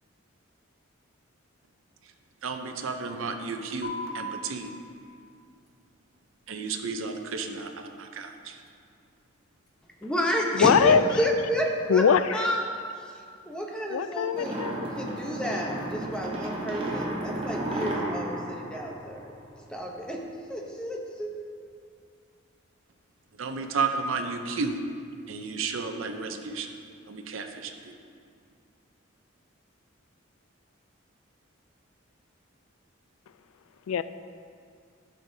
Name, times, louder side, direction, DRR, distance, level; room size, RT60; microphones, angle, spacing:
voice 1, 2.4-4.7 6.5-8.6 23.4-24.8 25.3-26.7 27.1-28.0, right 4 dB, 75° right, 6 dB, 0.6 m, -32 dB
sound 1, 3.8-10.8, left 1 dB, 50° left, 1.0 m, -45 dB
voice 2, 10.0-12.0 12.3-12.7 12.9-19.3 19.7-21.3, equal, 5° left, -1 dB, 0.8 m, -30 dB
voice 3, 10.5-11.0 11.9-12.5 13.9-14.9 33.9-34.0, left 7 dB, 90° left, 13 dB, 0.3 m, -22 dB
sound 2, 14.3-19.7, right 1 dB, 25° right, 0.9 m, -33 dB
12.0 x 6.5 x 2.7 m, 2.3 s
head